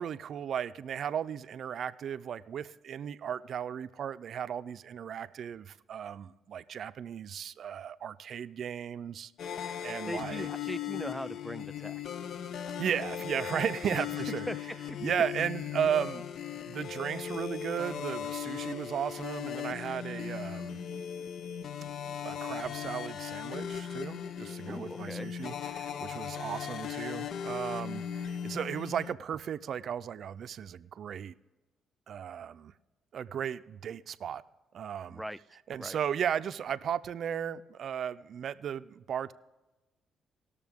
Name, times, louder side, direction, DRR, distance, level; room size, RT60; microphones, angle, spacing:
voice 1, 0.0-9.3 9.6-10.5 12.8-14.5 15.0-16.3 16.7-20.8 22.2-31.3 32.1-32.7 33.1-34.4 34.7-35.2 35.7-39.3, right 8 dB, 60° right, 0.4 m, -35 dB
sound 1, 9.4-29.1, left 9 dB, 65° left, 0.4 m, -38 dB
voice 2, 10.1-12.0 13.9-14.0 14.5-14.6 24.7-25.3 35.1-35.4 35.8-36.0, equal, ahead, 0.4 m, -39 dB
19.5 x 6.7 x 3.6 m
cardioid pair, 90°, 0 cm